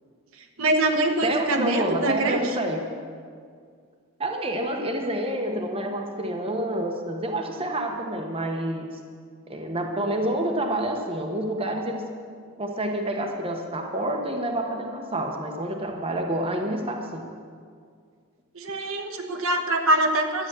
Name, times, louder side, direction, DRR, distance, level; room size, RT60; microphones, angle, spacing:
voice 1, 0.6-2.4 18.6-20.5, right 1 dB, 65° right, 4 dB, 1.2 m, -24 dB
voice 2, 1.2-2.8 4.2-8.9 9.5-12.1 12.6-17.3, right 1 dB, 25° right, 2 dB, 1.1 m, -28 dB
12.5 x 9.4 x 7.5 m, 2.1 s
head